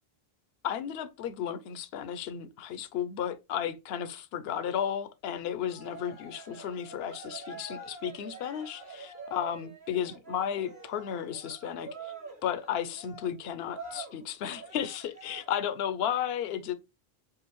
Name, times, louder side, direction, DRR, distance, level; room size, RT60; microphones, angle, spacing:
voice 1, 0.6-12.1 12.4-16.7, left 9 dB, 75° left, 0.8 m, -34 dB
Cheering, 5.7-15.7, right 3 dB, 75° right, 3.5 m, -46 dB
7.3 x 2.5 x 2.9 m
omnidirectional pair, 1.1 m